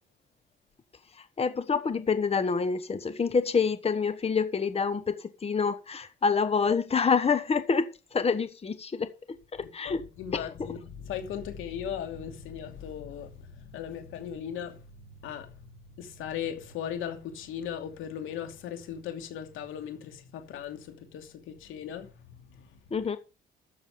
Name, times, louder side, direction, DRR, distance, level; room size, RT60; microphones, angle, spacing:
voice 1, 1.2-10.0 10.3-10.5 22.9-23.2, left 5 dB, 30° left, 1.2 m, -27 dB
voice 2, 9.8-22.8, left 8 dB, 90° left, 2.7 m, -38 dB
13.0 x 7.1 x 5.1 m
cardioid pair, 90°, 20 cm